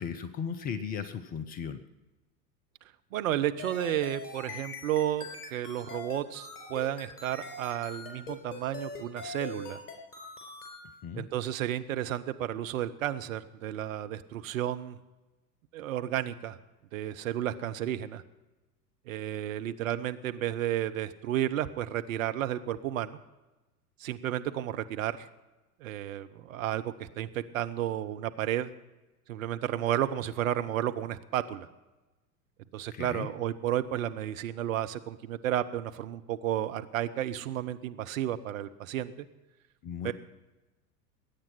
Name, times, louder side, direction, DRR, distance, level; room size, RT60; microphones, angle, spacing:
voice 1, 0.0-1.8 11.0-11.3 32.9-33.3 39.8-40.1, left 7 dB, 20° left, 12 dB, 0.5 m, -36 dB
voice 2, 3.1-9.8 11.1-15.0 15.7-16.6 16.9-18.2 19.1-23.2 24.0-25.3 25.8-28.7 29.3-31.7 32.7-39.3 40.0-40.1, right 12 dB, 55° right, 10 dB, 0.9 m, -32 dB
sound 1, 3.6-10.8, left 4 dB, 65° left, 4.3 m, -42 dB
20.5 x 9.0 x 5.7 m, 1.1 s
figure-of-eight pair, 85°, 49 cm